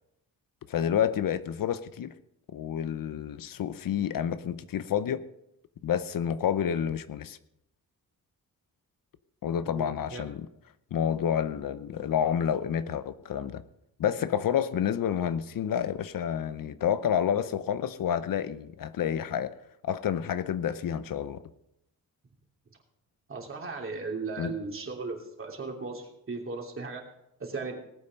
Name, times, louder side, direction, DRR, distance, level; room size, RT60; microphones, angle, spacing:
voice 1, 0.7-2.1 2.5-5.2 5.8-7.4 9.4-10.5 10.9-13.6 14.0-19.5 19.8-21.4 24.4-24.5, left 9 dB, 70° left, 13 dB, 0.8 m, -29 dB
voice 2, 9.7-10.3 23.3-27.0 27.4-27.8, right 4 dB, 35° right, 1 dB, 3.0 m, -36 dB
19.0 x 8.7 x 5.3 m, 0.83 s
wide cardioid pair, 140°, 35 cm